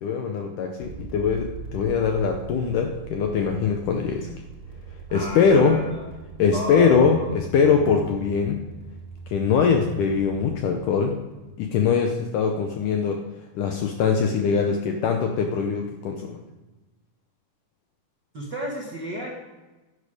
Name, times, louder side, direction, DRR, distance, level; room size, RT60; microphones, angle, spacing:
voice 1, 0.0-4.4 5.1-5.8 6.4-8.6 9.3-11.1 11.6-13.2 13.6-16.4, left 6 dB, 75° left, 4 dB, 1.9 m, -22 dB
sound 1, 0.8-12.5, right 5 dB, 40° right, 0.8 m, -42 dB
voice 2, 5.1-6.0 6.5-7.3 18.3-19.3, right 1 dB, 85° right, -2 dB, 0.9 m, -33 dB
11.0 x 10.0 x 5.0 m, 1.1 s
omnidirectional pair, 4.6 m